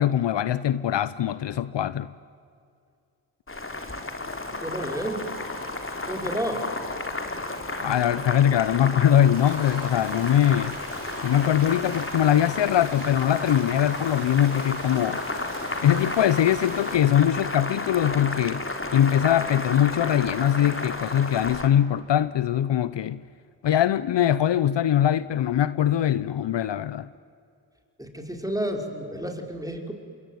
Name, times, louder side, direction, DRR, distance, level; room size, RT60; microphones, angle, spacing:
voice 1, 0.0-2.1 7.8-10.8 11.2-15.2 15.8-18.6 18.9-23.2 23.6-27.1, left 10 dB, 60° left, 0.8 m, -22 dB
Boiling, 3.5-21.7, left 2 dB, 25° left, 3.8 m, -32 dB
voice 2, 4.6-5.3 6.1-6.7 28.0-29.9, equal, 5° right, 5.5 m, -31 dB
sound 1, 5.0-17.4, left 3 dB, 85° left, 6.0 m, -46 dB
sound 2, 9.3-17.0, right 3 dB, 85° right, 5.4 m, -43 dB
27.5 x 22.5 x 9.5 m
supercardioid pair, 45°, 48 cm